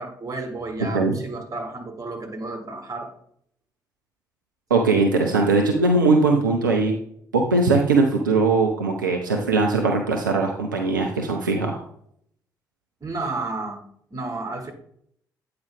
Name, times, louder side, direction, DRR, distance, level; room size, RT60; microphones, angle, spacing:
voice 1, 0.0-3.1 13.0-13.8 14.1-14.7, right 2 dB, 35° right, 3 dB, 1.5 m, -32 dB
voice 2, 4.7-6.9 7.3-11.8, right 3 dB, 80° right, 2 dB, 0.5 m, -20 dB
8.5 x 4.8 x 3.3 m, 0.66 s
figure-of-eight pair, 40°, 10 cm